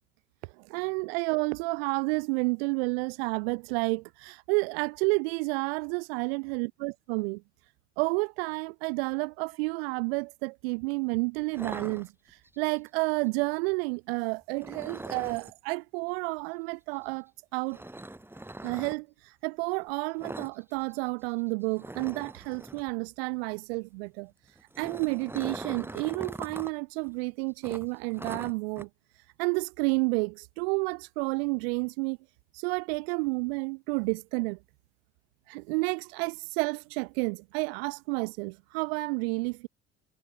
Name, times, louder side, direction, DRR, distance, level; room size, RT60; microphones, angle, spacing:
voice 1, 0.4-7.4 8.0-17.8 18.6-24.3 24.8-28.9 29.4-32.2 32.5-34.6 35.5-39.7, right 29 dB, 85° right, 1.0 m, -30 dB
sound 1, 11.5-12.6 14.6-15.5 17.7-18.9 20.2-20.6 20.8-21.0 21.3-21.4 21.8-22.9 24.5-26.7 27.0-27.1 27.6-28.8, right 1 dB, 5° right, 4.4 m, -41 dB
supercardioid pair, 85°, 30 cm